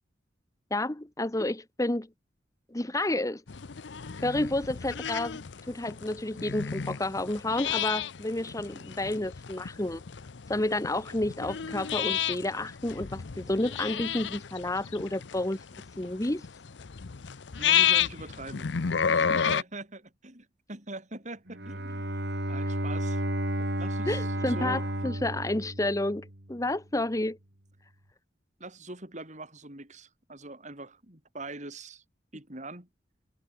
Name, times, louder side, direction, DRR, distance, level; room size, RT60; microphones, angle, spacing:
voice 1, 0.7-2.1 2.7-3.4 4.2-5.4 5.7-10.0 10.5-15.6 16.0-16.5 24.1-27.4, left 1 dB, 20° left, 1.0 m, -30 dB
sound 1, 3.5-19.6, left 8 dB, 70° left, 0.7 m, -31 dB
voice 2, 17.6-18.7 19.1-22.1 22.5-23.2 23.8-24.8 28.6-32.0 32.3-32.9, right 2 dB, 40° right, 5.2 m, -42 dB
Bowed string instrument, 21.5-26.5, right 1 dB, 60° right, 3.5 m, -32 dB
head